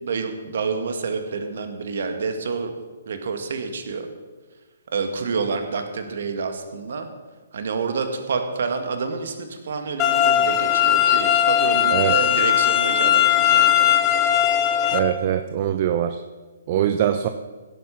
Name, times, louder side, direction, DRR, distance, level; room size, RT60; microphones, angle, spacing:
voice 1, 0.0-2.7 3.1-4.1 4.9-7.1 7.5-14.0, right 5 dB, 60° right, 6 dB, 1.9 m, -28 dB
sound 1, 10.0-15.0, left 10 dB, 25° left, 1.2 m, -18 dB
voice 2, 14.9-16.2 16.7-17.3, right 10 dB, 40° right, 9 dB, 0.6 m, -22 dB
16.0 x 8.6 x 6.0 m, 1.4 s
figure-of-eight pair, 130°, 0 cm